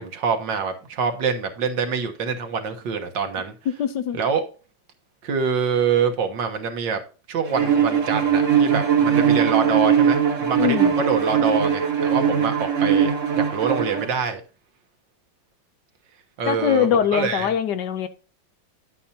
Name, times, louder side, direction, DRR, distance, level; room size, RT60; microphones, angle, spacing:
voice 1, 0.0-3.5 4.1-4.4 5.2-7.0 7.3-14.4 16.4-17.5, right 6 dB, 70° right, 1.8 m, -25 dB
voice 2, 3.8-4.2 10.6-11.0 16.5-18.1, left 8 dB, 70° left, 1.3 m, -22 dB
Bowed string instrument, 7.5-14.1, right 7 dB, 45° right, 1.4 m, -20 dB
10.0 x 8.6 x 2.8 m
omnidirectional pair, 2.1 m